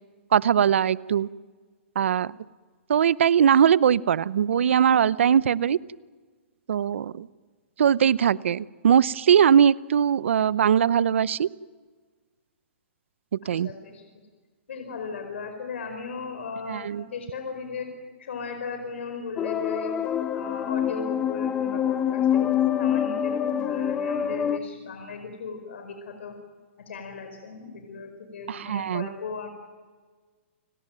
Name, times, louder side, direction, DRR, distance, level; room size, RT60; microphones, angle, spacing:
voice 1, 0.3-1.3 2.0-2.3 2.9-5.8 6.7-7.3 7.8-11.5 13.5-13.7 16.7-17.0 28.5-29.1, right 8 dB, 75° right, 19 dB, 0.8 m, -21 dB
voice 2, 13.6-14.2 14.7-19.9 20.3-26.3 26.9-29.5, left 5 dB, 75° left, 5 dB, 4.8 m, -37 dB
sound 1, 19.4-24.6, left 9 dB, 15° left, 1.0 m, -26 dB
29.5 x 18.5 x 9.2 m, 1.5 s
hypercardioid pair, 160°, 7 cm